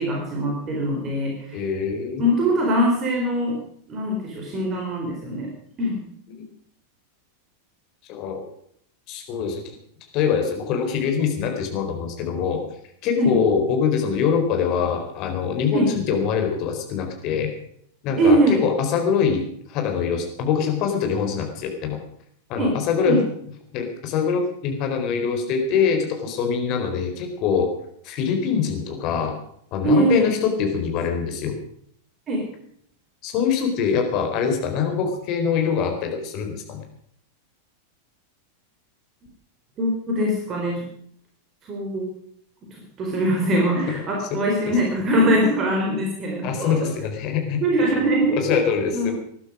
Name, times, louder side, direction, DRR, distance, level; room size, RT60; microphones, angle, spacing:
voice 1, 0.0-1.6 2.2-3.6 3.9-5.5 5.8-6.0 13.2-13.3 15.7-15.9 18.2-18.6 22.6-23.2 29.8-30.3 32.3-32.5 39.8-40.9 41.6-42.1 42.7-46.9 47.6-48.6 48.9-49.1, right 1 dB, 30° right, 0 dB, 4.2 m, -22 dB
voice 2, 1.5-2.2 6.3-6.4 8.1-8.4 9.1-9.6 10.1-12.6 13.0-17.5 18.0-22.0 22.5-23.2 23.7-27.7 28.0-29.3 29.7-31.6 33.2-36.8 44.7-44.8 46.4-48.0 48.3-49.1, left 6 dB, 40° left, 3 dB, 4.3 m, -24 dB
20.0 x 11.5 x 5.1 m, 0.67 s
figure-of-eight pair, 90°, 0 cm